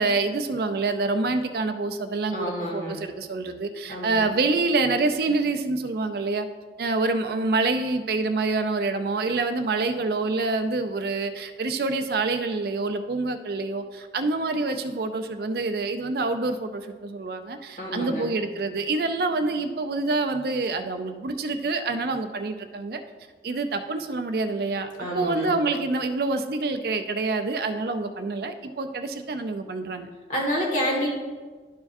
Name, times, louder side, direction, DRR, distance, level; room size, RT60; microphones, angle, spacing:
voice 1, 0.0-6.5 6.8-23.0 23.4-30.1, right 3 dB, 55° right, 8 dB, 0.4 m, -26 dB
voice 2, 2.3-3.0 3.9-4.2 17.8-18.3 25.0-25.5 30.3-31.1, equal, 45° left, -1 dB, 1.7 m, -28 dB
12.0 x 4.7 x 2.6 m, 1.4 s
head